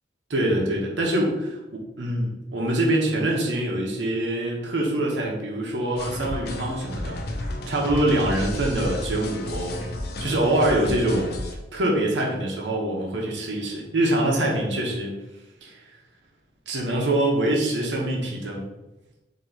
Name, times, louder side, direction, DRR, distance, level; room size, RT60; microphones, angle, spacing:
voice 1, 0.3-1.3 1.7-9.8 10.2-11.3 11.7-15.1 15.6-15.8 16.7-18.6, right 1 dB, 80° right, -1 dB, 1.0 m, -24 dB
sound 1, 6.0-11.5, left 1 dB, 60° left, 0.7 m, -32 dB
4.1 x 2.9 x 4.5 m, 0.99 s
head